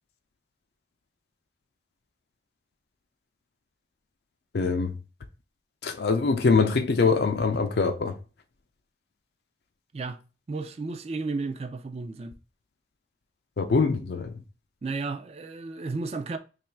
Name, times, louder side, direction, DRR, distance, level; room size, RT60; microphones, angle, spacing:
voice 1, 4.5-4.9 5.8-8.2 13.6-14.3, left 4 dB, 70° left, 0.4 m, -23 dB
voice 2, 9.9-12.3 14.8-16.4, right 3 dB, 35° right, 0.3 m, -33 dB
3.0 x 2.4 x 4.3 m
head